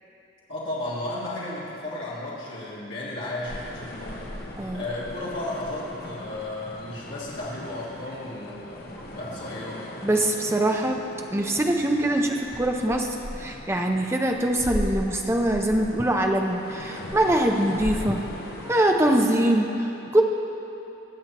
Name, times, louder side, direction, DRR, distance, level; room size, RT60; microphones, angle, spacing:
voice 1, 0.5-4.3 4.7-8.8 9.1-9.9, left 1 dB, 70° left, -9 dB, 1.8 m, -34 dB
sound 1, 3.5-19.5, left 1 dB, 50° left, 1.0 m, -38 dB
voice 2, 10.0-18.2 18.5-20.2, right 1 dB, 15° right, 2 dB, 0.6 m, -23 dB
19.5 x 7.3 x 3.0 m, 3.0 s
head